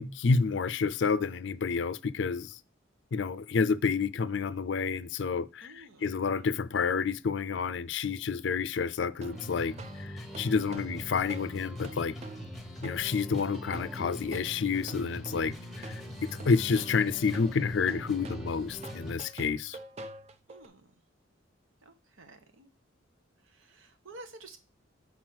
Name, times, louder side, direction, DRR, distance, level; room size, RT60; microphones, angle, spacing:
voice 1, 0.0-2.6 3.1-12.1 12.8-19.8, left 5 dB, 60° left, 0.4 m, -29 dB
voice 2, 5.6-6.2 20.5-20.9 21.8-22.7 23.4-24.6, right 2 dB, 85° right, 1.2 m, -51 dB
sound 1, 9.2-20.7, right 3 dB, 35° right, 0.5 m, -46 dB
sound 2, 9.3-19.2, left 1 dB, ahead, 1.0 m, -42 dB
6.2 x 4.2 x 6.0 m
head